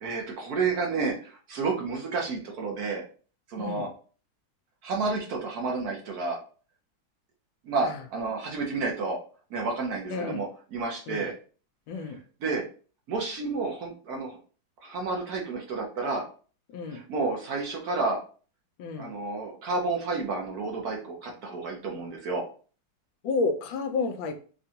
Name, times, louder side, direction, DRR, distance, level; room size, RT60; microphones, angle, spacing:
voice 1, 0.0-3.0 3.5-3.9 4.8-6.4 7.6-9.2 9.5-11.3 12.0-12.1 12.4-12.6 13.1-14.4 14.8-16.2 16.9-18.2 19.0-22.4, right 3 dB, 60° right, 0 dB, 1.2 m, -30 dB
voice 2, 3.6-3.9 7.8-8.0 10.1-10.4 11.1-11.3 11.9-12.2 16.7-17.0 18.8-19.1 23.2-24.3, left 4 dB, 80° left, 6 dB, 1.3 m, -30 dB
5.1 x 2.3 x 2.8 m, 0.39 s
omnidirectional pair, 2.1 m